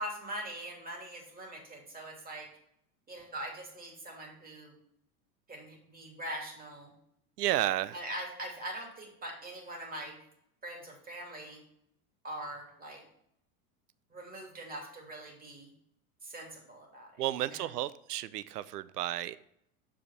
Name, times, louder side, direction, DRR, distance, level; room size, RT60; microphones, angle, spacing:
voice 1, 0.0-2.5 3.1-4.7 5.5-6.9 7.9-10.2 10.6-11.6 12.2-13.0 14.1-15.7 16.2-17.7, right 1 dB, 20° right, -1 dB, 2.9 m, -42 dB
voice 2, 7.4-8.0 17.2-19.4, right 13 dB, 85° right, 17 dB, 0.6 m, -32 dB
7.1 x 5.1 x 5.9 m, 0.73 s
hypercardioid pair, 95°, 46 cm